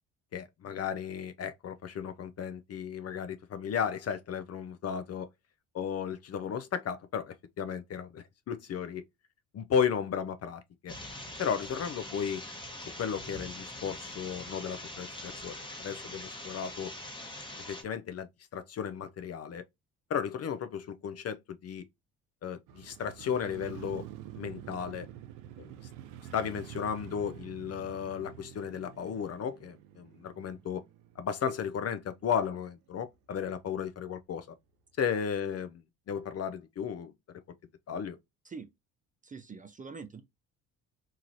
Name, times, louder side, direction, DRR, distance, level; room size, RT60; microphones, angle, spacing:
voice 1, 0.3-5.3 5.7-9.0 9.5-10.9 11.4-12.4 13.0-16.9 17.7-19.6 20.1-21.8 22.4-24.1 24.3-25.1 25.6-25.7 26.3-30.8 31.2-34.5 35.0-37.1 37.9-38.2, left 7 dB, 40° left, 0.5 m, -34 dB
sound 1, 10.9-17.8, left 1 dB, 10° left, 1.0 m, -43 dB
Motorcycle, 22.7-32.8 33.1-33.2, right 11 dB, 75° right, 0.5 m, -48 dB
voice 2, 39.2-40.2, right 5 dB, 20° right, 0.5 m, -44 dB
3.0 x 2.4 x 2.6 m
hypercardioid pair, 55°, 41 cm